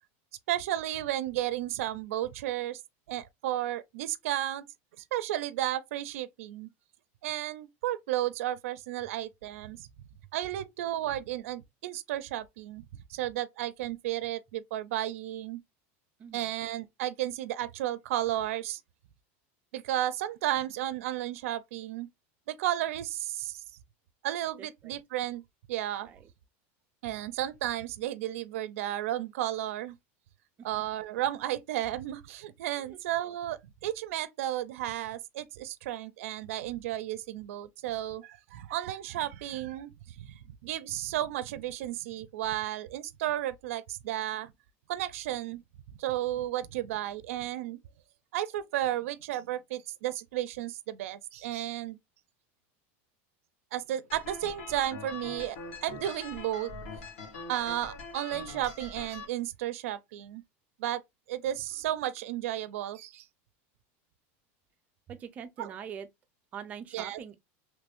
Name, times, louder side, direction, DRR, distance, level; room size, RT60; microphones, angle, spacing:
voice 1, 0.5-2.8 3.1-4.7 5.1-6.7 7.2-9.9 10.3-15.6 16.3-18.8 19.7-22.1 22.5-23.6 24.2-25.4 25.7-26.1 27.0-30.0 30.6-44.5 44.9-45.6 46.0-47.8 48.3-52.0 53.7-56.7 57.5-60.4 60.8-61.0 61.3-63.2 65.6-65.7 66.9-67.2, right 13 dB, 85° right, 0.4 m, -33 dB
voice 2, 16.2-16.5 24.6-25.0 26.0-26.3 32.8-33.0 65.1-66.1 66.5-67.4, right 8 dB, 20° right, 0.4 m, -43 dB
sound 1, 54.1-59.2, left 3 dB, 80° left, 1.4 m, -43 dB
3.1 x 2.5 x 3.4 m
supercardioid pair, 180°, 7 cm